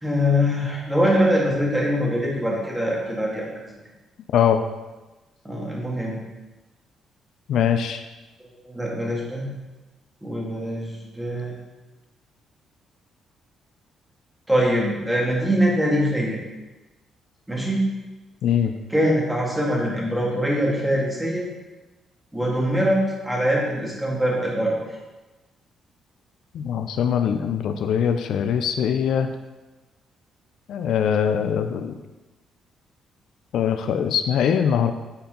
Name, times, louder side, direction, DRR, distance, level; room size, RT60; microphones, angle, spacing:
voice 1, 0.0-3.7 5.4-6.2 8.4-9.5 10.2-11.6 14.5-16.4 17.5-17.9 18.9-21.4 22.3-24.9, equal, 10° right, -3 dB, 1.9 m, -23 dB
voice 2, 7.5-8.0 18.4-18.7 26.5-29.3 30.7-32.0 33.5-34.9, left 8 dB, 75° left, 7 dB, 0.4 m, -22 dB
7.0 x 4.3 x 3.8 m, 1.1 s
cardioid pair, 90°, 0 cm